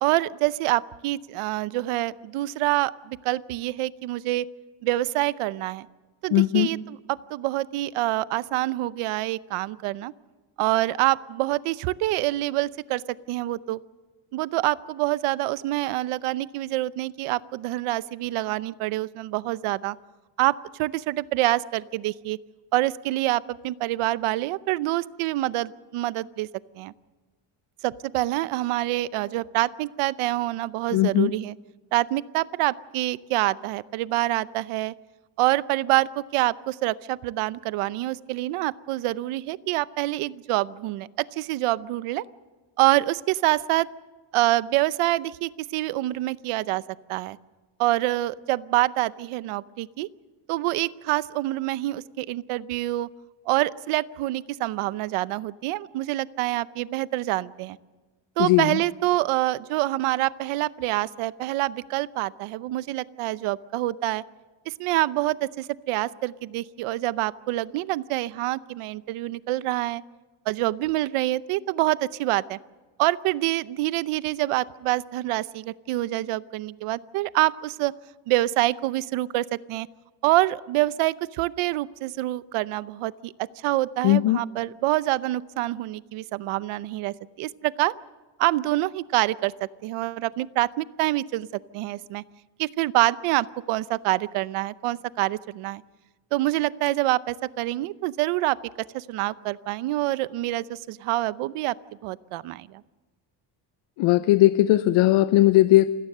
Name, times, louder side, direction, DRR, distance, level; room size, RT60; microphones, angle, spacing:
voice 1, 0.0-4.5 4.8-5.9 6.2-10.1 10.6-13.0 13.3-13.8 14.3-20.0 20.4-22.4 22.7-26.5 26.8-26.9 27.8-31.5 31.9-34.9 35.4-42.2 42.8-43.9 44.3-46.8 47.1-47.4 47.8-50.1 50.5-53.1 53.5-57.8 58.4-64.2 64.7-70.0 70.5-72.6 73.0-77.9 78.3-79.9 80.2-87.9 88.4-91.5 91.7-92.2 92.6-95.8 96.3-98.6 98.9-101.8 102.0-102.8, right 17 dB, 85° right, 17 dB, 0.8 m, -26 dB
voice 2, 6.3-6.7 30.9-31.3 58.4-58.8 84.0-84.4 104.0-105.9, left 15 dB, 80° left, 13 dB, 0.8 m, -18 dB
28.5 x 17.0 x 6.7 m, 1.3 s
cardioid pair, 170°, 50 cm